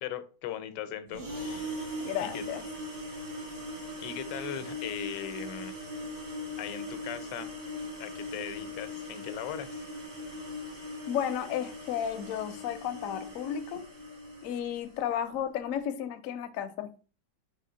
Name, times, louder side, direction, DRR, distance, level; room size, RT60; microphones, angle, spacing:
voice 1, 0.0-1.9 2.2-2.4 4.0-5.8 6.6-7.5 8.0-9.8, left 10 dB, 90° left, 11 dB, 1.2 m, -39 dB
sound 1, 1.1-15.0, left 1 dB, 75° right, 2.4 m, -40 dB
voice 2, 2.0-2.6 11.1-13.8 14.4-16.9, left 9 dB, 70° left, 9 dB, 0.8 m, -33 dB
4.2 x 2.9 x 3.8 m, 0.38 s
omnidirectional pair, 1.8 m